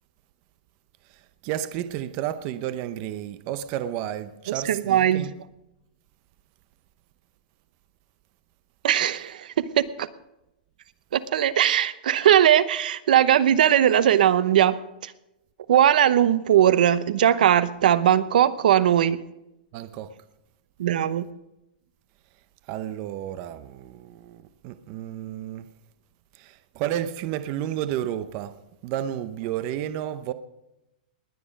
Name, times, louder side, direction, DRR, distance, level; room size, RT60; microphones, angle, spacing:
voice 1, 1.1-5.3 19.7-20.1 22.7-25.7 26.3-28.6 28.8-30.3, right 11 dB, 30° right, 0.6 m, -32 dB
voice 2, 4.7-5.3 8.8-10.1 11.1-15.1 15.7-19.2 20.8-21.2, right 10 dB, 65° right, 0.8 m, -20 dB
19.5 x 9.4 x 5.2 m
supercardioid pair, 170°, 5 cm